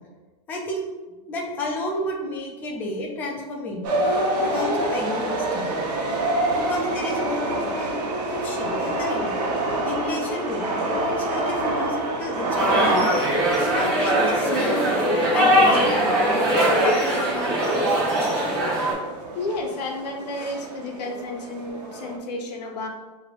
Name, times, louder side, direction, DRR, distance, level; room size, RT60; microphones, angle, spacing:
voice 1, 0.5-0.8 1.3-4.0 4.4-5.7 6.5-9.3 9.8-13.1 13.7-14.9 15.3-15.9, left 2 dB, 10° left, -1 dB, 0.3 m, -31 dB
sound 1, 3.8-22.2, right 1 dB, 80° right, 1.0 m, -28 dB
sound 2, 12.5-18.9, equal, 30° right, 1.2 m, -21 dB
voice 2, 19.3-22.9, left 2 dB, 85° left, 1 dB, 1.1 m, -31 dB
6.6 x 3.0 x 2.4 m, 1.2 s
supercardioid pair, 175°, 20 cm